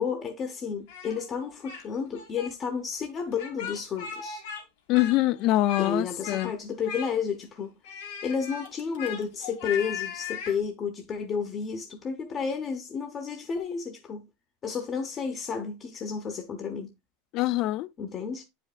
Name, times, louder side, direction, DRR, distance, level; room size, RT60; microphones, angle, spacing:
voice 1, 0.0-4.4 5.8-7.7 8.2-14.2 14.6-16.9 18.0-18.4, left 6 dB, 25° left, 0.7 m, -31 dB
Speech, 0.9-1.8 2.1-2.5 3.3-4.6 4.9-5.9 6.2-6.5 6.8-7.4 7.8-10.6, left 8 dB, 70° left, 2.0 m, -38 dB
voice 2, 4.9-6.5 17.3-17.9, left 16 dB, 40° left, 0.3 m, -24 dB
9.6 x 5.1 x 2.4 m
supercardioid pair, 165°, 0 cm